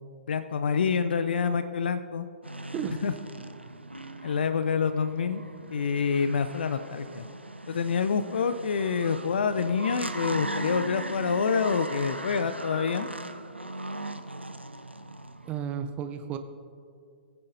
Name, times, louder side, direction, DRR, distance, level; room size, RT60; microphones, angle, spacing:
voice 1, 0.3-2.3 3.0-3.1 4.2-5.4 5.7-7.3 7.7-13.1, left 6 dB, 60° left, 11 dB, 0.5 m, -27 dB
sound 1, 2.4-15.6, right 1 dB, 90° right, 0.5 m, -39 dB
voice 2, 15.5-16.4, right 8 dB, 20° right, 8 dB, 0.6 m, -32 dB
20.0 x 9.9 x 2.7 m, 2.3 s
figure-of-eight pair, 115°, 6 cm